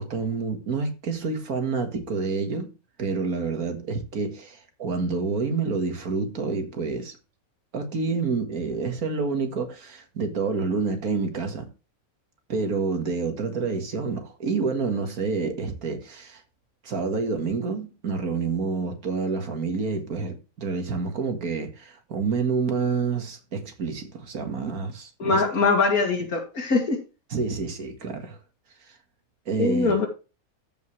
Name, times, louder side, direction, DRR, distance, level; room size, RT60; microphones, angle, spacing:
voice 1, 0.0-2.7 3.0-7.2 7.7-11.7 12.5-16.4 16.8-25.4 27.3-28.4 29.5-30.0, right 4 dB, 75° right, 2.2 m, -28 dB
voice 2, 25.2-27.0 29.6-30.1, left 4 dB, 80° left, 2.7 m, -22 dB
14.0 x 5.4 x 3.2 m
omnidirectional pair, 1.5 m